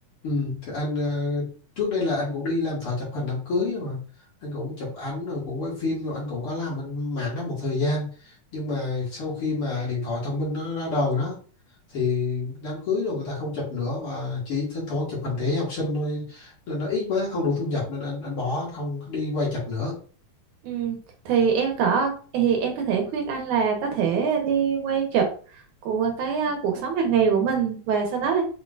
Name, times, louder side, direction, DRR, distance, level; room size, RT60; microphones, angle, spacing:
voice 1, 0.2-1.5 1.8-4.0 4.4-11.4 11.9-19.9, left 3 dB, 45° left, -5 dB, 2.5 m, -28 dB
voice 2, 20.6-21.0 21.3-25.3 25.8-28.4, right 6 dB, 75° right, 2 dB, 2.2 m, -23 dB
6.0 x 3.6 x 2.4 m, 0.40 s
omnidirectional pair, 3.7 m